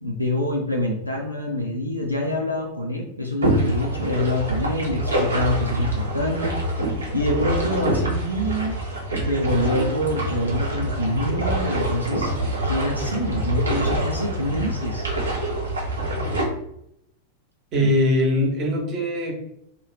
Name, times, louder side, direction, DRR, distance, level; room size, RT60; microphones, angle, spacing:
voice 1, 0.0-6.7 7.1-8.8 9.3-12.3 12.6-15.1 17.7-17.9, left 1 dB, 90° left, 0 dB, 0.4 m, -26 dB
sound 1, 3.4-16.5, right 1 dB, 75° right, 0.9 m, -25 dB
voice 2, 17.7-19.3, left 1 dB, 35° right, 0 dB, 0.9 m, -21 dB
2.4 x 2.3 x 3.2 m, 0.77 s
figure-of-eight pair, 90°, 0 cm